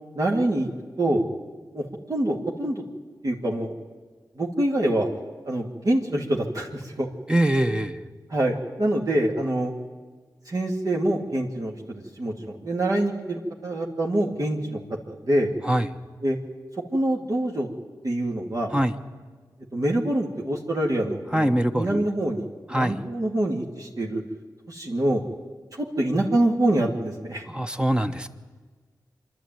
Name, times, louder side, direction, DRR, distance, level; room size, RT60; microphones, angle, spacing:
voice 1, 0.1-0.7 1.0-1.2 1.7-2.8 3.2-3.7 4.4-5.1 5.4-7.1 8.3-9.7 10.5-14.8 15.1-15.5 16.2-16.4 16.9-17.7 18.0-18.7 19.7-24.2 24.7-25.2 25.8-27.4, right 1 dB, 50° right, -1 dB, 2.5 m, -25 dB
voice 2, 7.3-8.0 15.6-15.9 18.7-18.9 21.3-22.0 22.7-23.0 27.5-28.3, right 1 dB, 10° right, 7 dB, 1.2 m, -23 dB
25.5 x 11.5 x 9.2 m, 1.4 s
cardioid pair, 45°, 8 cm